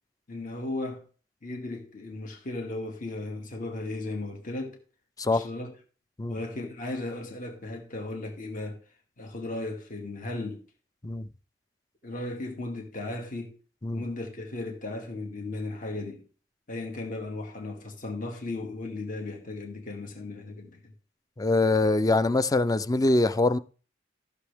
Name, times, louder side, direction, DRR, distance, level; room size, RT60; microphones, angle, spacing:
voice 1, 0.3-1.0 1.4-4.8 5.3-5.7 6.3-8.8 9.2-10.6 12.0-13.6 13.9-16.3 16.7-20.9, left 2 dB, 45° left, 2.1 m, -36 dB
voice 2, 21.4-23.6, left 2 dB, 20° left, 0.4 m, -23 dB
14.5 x 7.0 x 3.5 m
head